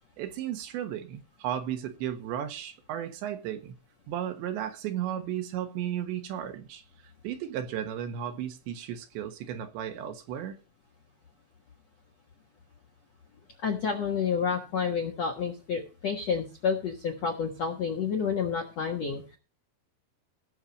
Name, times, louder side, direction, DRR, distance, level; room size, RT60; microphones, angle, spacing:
voice 1, 0.2-3.8 4.1-6.8 7.2-10.6, right 10 dB, 75° right, 3.4 m, -34 dB
voice 2, 13.6-19.4, left 6 dB, 60° left, 1.7 m, -29 dB
17.5 x 6.7 x 4.2 m
omnidirectional pair, 5.4 m